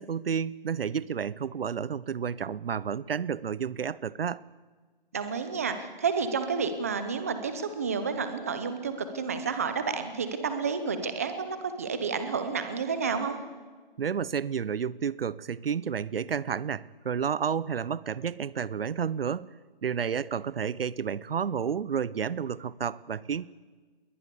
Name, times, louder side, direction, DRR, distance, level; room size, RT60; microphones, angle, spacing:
voice 1, 0.0-4.4 14.0-19.5 19.8-23.4, right 7 dB, 75° right, 21 dB, 0.7 m, -31 dB
voice 2, 5.1-13.4, right 5 dB, 15° right, 9 dB, 0.8 m, -30 dB
21.5 x 18.5 x 6.9 m, 1.4 s
hypercardioid pair, 175°, 29 cm